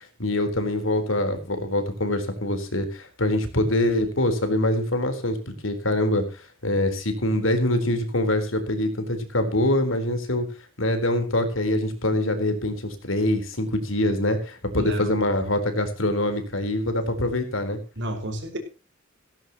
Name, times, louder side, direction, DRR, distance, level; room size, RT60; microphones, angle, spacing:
voice 1, 0.0-5.4 5.6-10.5 10.8-17.8, left 1 dB, 70° left, 7 dB, 4.1 m, -24 dB
voice 2, 14.7-15.1 18.0-18.6, right 1 dB, 60° right, 6 dB, 5.2 m, -31 dB
17.5 x 17.0 x 3.0 m, 0.33 s
head